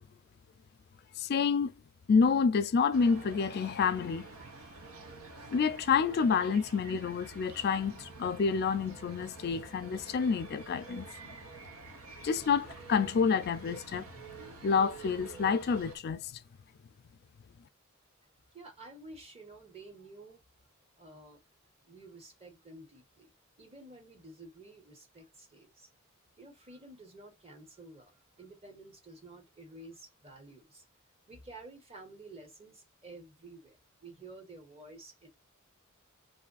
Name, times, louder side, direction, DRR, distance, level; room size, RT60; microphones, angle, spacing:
voice 1, 1.2-1.7 2.1-4.3 5.5-11.1 12.2-14.1 14.6-16.3, left 5 dB, 50° left, 0.3 m, -28 dB
sound 1, 2.9-16.0, right 3 dB, 80° right, 0.8 m, -48 dB
voice 2, 18.5-20.4 21.0-21.4 21.8-23.3 23.6-25.9 26.4-30.8 31.3-35.3, right 2 dB, 30° right, 1.2 m, -51 dB
2.6 x 2.4 x 4.0 m
head